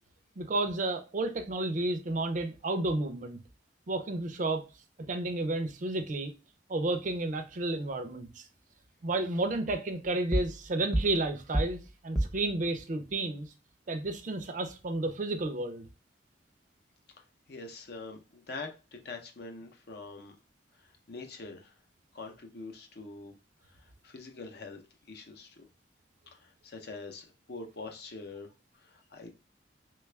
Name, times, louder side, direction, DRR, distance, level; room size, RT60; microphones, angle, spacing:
voice 1, 0.4-3.4 3.9-4.6 5.0-6.3 6.7-8.4 9.0-11.8 12.0-13.5 13.9-15.8, right 2 dB, 45° right, 0.4 m, -31 dB
sound 1, 10.3-10.7 10.9-12.5, right 1 dB, 5° left, 0.6 m, -30 dB
voice 2, 17.5-20.3 20.8-21.7 22.1-23.4 23.6-24.8 25.1-25.6 26.3-28.5 28.8-29.3, left 3 dB, 60° left, 0.6 m, -44 dB
3.2 x 2.3 x 3.2 m
head